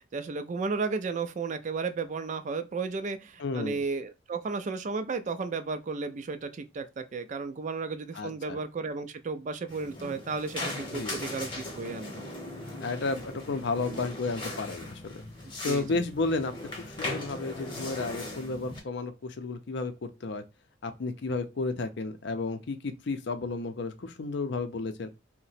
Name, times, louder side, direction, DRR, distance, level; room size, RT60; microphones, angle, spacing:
voice 1, 0.0-12.2 15.6-16.0, right 4 dB, 40° right, 0.3 m, -34 dB
voice 2, 3.4-3.8 8.2-8.6 10.9-11.1 12.8-15.2 15.6-20.4 20.8-25.1, left 3 dB, 60° left, 0.5 m, -32 dB
sound 1, 9.7-18.8, left 2 dB, 25° left, 0.9 m, -39 dB
2.8 x 2.1 x 4.1 m
head